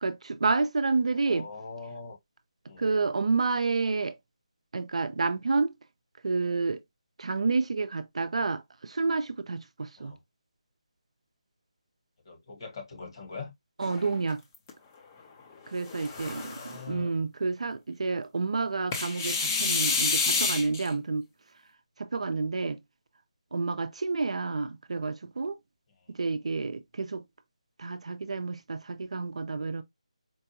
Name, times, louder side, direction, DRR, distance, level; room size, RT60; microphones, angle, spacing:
voice 1, 0.0-1.5 2.8-4.2 4.7-5.7 6.2-6.8 7.2-10.1 13.8-14.4 15.7-21.2 22.0-22.8 23.5-25.6 26.1-27.2 27.8-29.8, right 4 dB, 65° right, 0.5 m, -29 dB
voice 2, 1.1-2.2 2.7-2.9 10.0-10.2 12.2-13.5 16.0-17.1, left 4 dB, 45° left, 1.4 m, -43 dB
sound 1, 13.8-14.7 15.7-16.8 18.9-20.9, left 4 dB, 20° left, 0.6 m, -29 dB
4.5 x 2.2 x 2.8 m
figure-of-eight pair, 160°, 4 cm